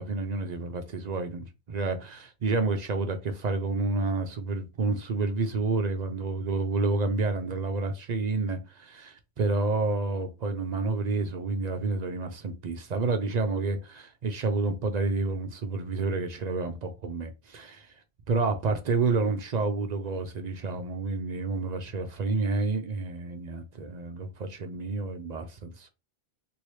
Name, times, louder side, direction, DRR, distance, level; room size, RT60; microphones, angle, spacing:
voice 1, 0.0-17.9 18.3-25.9, right 3 dB, 55° right, 0.5 m, -29 dB
3.0 x 2.7 x 3.0 m
omnidirectional pair, 1.1 m